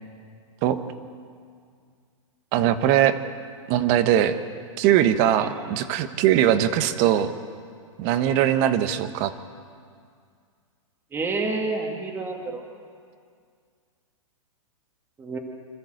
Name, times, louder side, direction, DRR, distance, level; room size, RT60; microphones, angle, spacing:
voice 1, 2.5-3.2 3.7-4.4 4.8-7.3 8.0-9.3, right 11 dB, 35° right, 11 dB, 1.2 m, -21 dB
voice 2, 11.1-12.7 15.2-15.4, right 3 dB, 15° right, 1 dB, 2.0 m, -29 dB
26.0 x 13.5 x 7.9 m, 2.2 s
hypercardioid pair, 140°, 17 cm